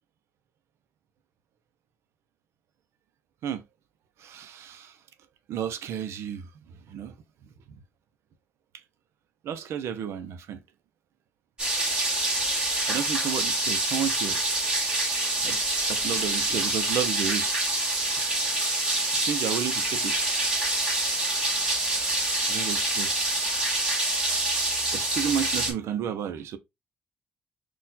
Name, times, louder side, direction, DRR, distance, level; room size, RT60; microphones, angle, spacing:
voice 1, 4.2-4.9 5.5-6.5 6.9-7.1 7.7-7.8 9.4-10.6 12.9-14.4 15.4-15.6 15.9-17.7 19.1-20.1 22.5-23.3 24.9-26.6, right 9 dB, 85° right, 0.7 m, -32 dB
sound 1, 11.6-25.7, right 2 dB, 20° right, 1.8 m, -26 dB
4.3 x 2.4 x 4.0 m
cardioid pair, 135°, 4 cm